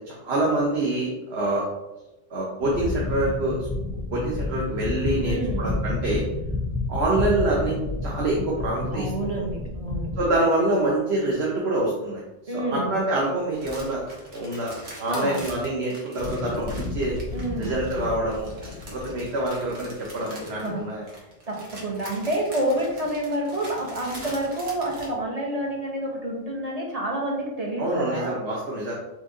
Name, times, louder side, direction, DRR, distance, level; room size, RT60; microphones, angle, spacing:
voice 1, 0.1-1.7 2.3-3.6 4.1-6.2 6.9-9.1 10.2-12.2 12.7-14.0 14.3-14.7 15.0-17.2 17.6-18.5 18.9-21.0 27.8-28.9, right 1 dB, 65° right, -4 dB, 1.1 m, -26 dB
sound 1, 2.6-10.2, left 2 dB, 5° left, 0.4 m, -29 dB
voice 2, 5.3-5.7 8.9-10.1 12.5-12.9 15.0-15.4 17.3-17.8 20.6-20.8 21.1-28.3, right 1 dB, 35° right, -2 dB, 0.9 m, -28 dB
sound 2, 13.5-25.1, right 1 dB, 80° right, 1.5 m, -43 dB
sound 3, 16.2-20.8, left 4 dB, 55° left, 0.6 m, -35 dB
4.2 x 3.0 x 3.9 m, 1.0 s
omnidirectional pair, 1.2 m